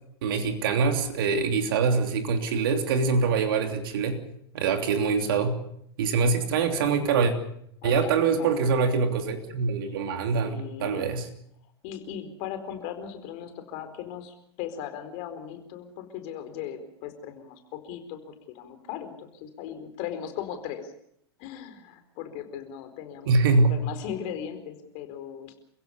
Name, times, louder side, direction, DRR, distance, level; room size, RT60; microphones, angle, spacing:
voice 1, 0.2-4.2 4.5-5.6 6.0-7.3 7.8-11.3 23.3-23.7, right 4 dB, 60° right, 6 dB, 3.1 m, -24 dB
voice 2, 5.1-5.5 7.8-8.1 8.4-8.5 10.4-11.1 11.8-20.9 21.4-25.6, left 9 dB, 45° left, 8 dB, 4.5 m, -38 dB
29.5 x 16.5 x 7.0 m, 0.71 s
figure-of-eight pair, 95°, 13 cm